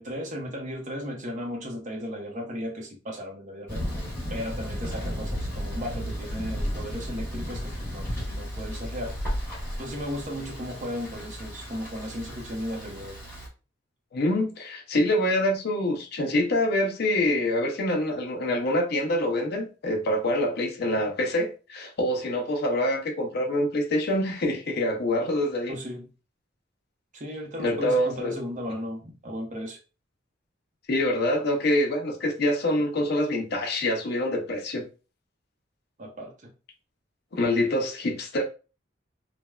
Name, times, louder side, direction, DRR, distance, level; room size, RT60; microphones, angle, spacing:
voice 1, 0.0-3.9 4.3-9.2 9.8-13.2 25.7-26.1 27.1-29.8 36.0-36.5, equal, 40° right, 0.7 m, -35 dB
Thunder, 3.7-13.5, equal, 10° left, 1.2 m, -34 dB
voice 2, 14.1-25.7 27.6-28.3 30.9-34.9 37.3-38.4, left 1 dB, 55° left, 0.6 m, -25 dB
3.2 x 2.1 x 2.3 m
head